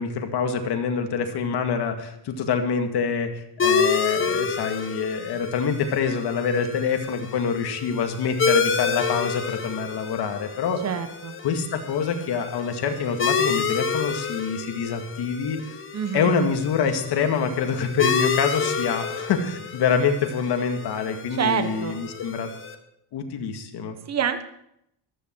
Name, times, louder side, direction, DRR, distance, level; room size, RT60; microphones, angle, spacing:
voice 1, 0.0-10.8 11.4-15.8 16.1-22.5 23.1-24.0, left 6 dB, 70° left, 5 dB, 2.1 m, -26 dB
sound 1, 3.6-22.7, left 5 dB, 30° left, 1.4 m, -29 dB
voice 2, 10.8-11.3 15.9-16.3 21.4-21.9 24.1-24.4, right 8 dB, 40° right, 9 dB, 1.3 m, -26 dB
15.0 x 13.0 x 4.6 m, 0.76 s
cardioid pair, 125°, 42 cm